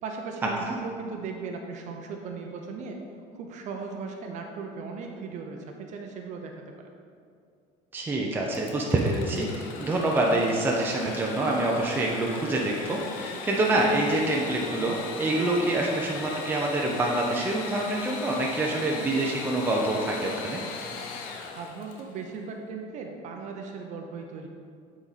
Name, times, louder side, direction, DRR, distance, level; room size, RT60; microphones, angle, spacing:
voice 1, 0.0-3.0 3.3-6.7 21.5-24.5, right 4 dB, 55° right, 2 dB, 0.7 m, -37 dB
voice 2, 7.9-20.6, right 2 dB, 15° right, -2 dB, 0.7 m, -26 dB
Engine / Sawing, 8.5-22.2, left 4 dB, 70° left, 0.8 m, -39 dB
9.0 x 4.1 x 4.1 m, 2.3 s
cardioid pair, 145°, 15 cm